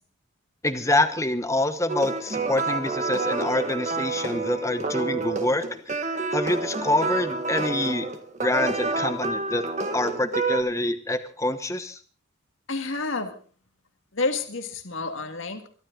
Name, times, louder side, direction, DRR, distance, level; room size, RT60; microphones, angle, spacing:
voice 1, 0.6-6.0 6.3-8.1 8.4-9.6 9.9-12.0, left 1 dB, 15° left, 10 dB, 1.1 m, -26 dB
sound 1, 1.9-10.6, right 3 dB, 35° right, 1.7 m, -28 dB
voice 2, 12.7-13.4 14.1-15.7, left 3 dB, 70° left, 6 dB, 1.9 m, -29 dB
24.0 x 12.0 x 3.9 m, 0.39 s
head